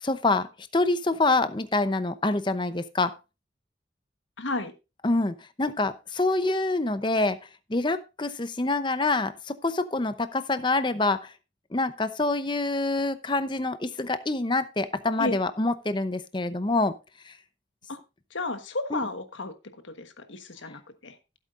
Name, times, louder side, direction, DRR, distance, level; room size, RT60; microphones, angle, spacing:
voice 1, 0.0-3.1 5.0-7.4 7.7-11.3 11.7-16.9 17.3-17.4 18.9-19.1, left 2 dB, 25° left, 12 dB, 0.7 m, -26 dB
voice 2, 4.4-4.7 15.2-15.4 17.9-18.0 18.3-19.5 19.8-21.2, left 2 dB, 75° left, 8 dB, 1.3 m, -33 dB
15.5 x 8.3 x 2.5 m, 0.27 s
head